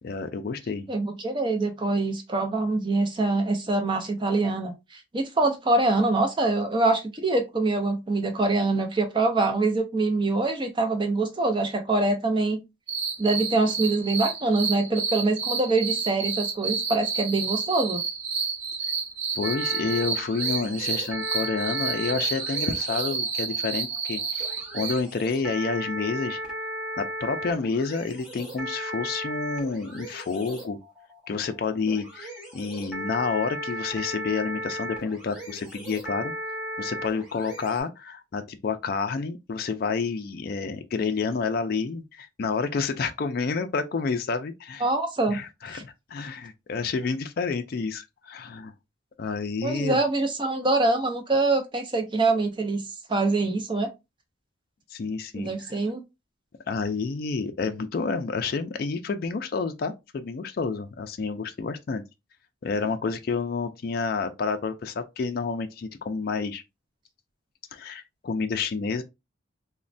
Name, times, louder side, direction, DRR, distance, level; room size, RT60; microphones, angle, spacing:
voice 1, 0.0-0.9 19.4-26.4 27.0-30.8 31.3-36.3 36.8-44.8 45.3-48.7 49.2-50.0 54.9-55.7 56.7-62.0 62.6-66.6 67.7-69.0, left 4 dB, 50° left, 0.3 m, -29 dB
voice 2, 0.9-12.6 13.2-18.0 44.8-45.4 45.7-45.8 49.6-52.8 53.1-53.9 55.3-56.0, right 2 dB, 25° right, 0.5 m, -24 dB
sound 1, 12.9-25.0, right 5 dB, 60° right, 1.0 m, -30 dB
sound 2, 19.4-37.8, equal, 5° right, 1.2 m, -36 dB
3.0 x 2.1 x 2.5 m
head